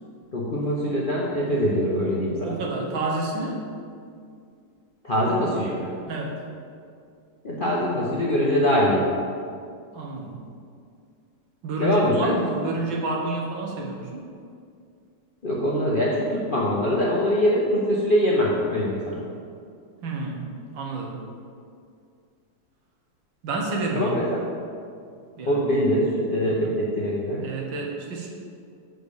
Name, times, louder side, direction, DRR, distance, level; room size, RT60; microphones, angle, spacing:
voice 1, 0.3-2.5 5.0-5.9 7.4-9.1 11.8-12.4 15.4-19.2 23.9-24.4 25.4-27.4, equal, 45° left, -5 dB, 0.7 m, -23 dB
voice 2, 2.4-3.6 6.1-6.3 9.9-10.4 11.6-14.2 20.0-20.4 20.7-21.2 23.4-24.1 25.4-25.6 27.4-28.3, right 3 dB, 75° right, 0 dB, 1.8 m, -29 dB
6.3 x 5.1 x 6.8 m, 2.3 s
omnidirectional pair, 2.1 m